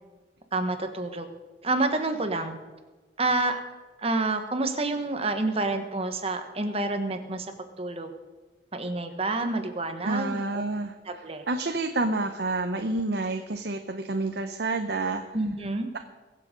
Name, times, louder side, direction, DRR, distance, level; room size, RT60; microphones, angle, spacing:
voice 1, 0.5-1.3 1.6-2.6 3.2-3.6 4.0-7.5 7.8-8.1 8.7-10.6 11.0-11.4 15.3-15.9, right 2 dB, 35° right, 7 dB, 1.3 m, -28 dB
voice 2, 10.0-10.9 11.5-15.2, right 2 dB, 65° right, 6 dB, 0.8 m, -28 dB
22.5 x 7.6 x 5.2 m, 1.2 s
head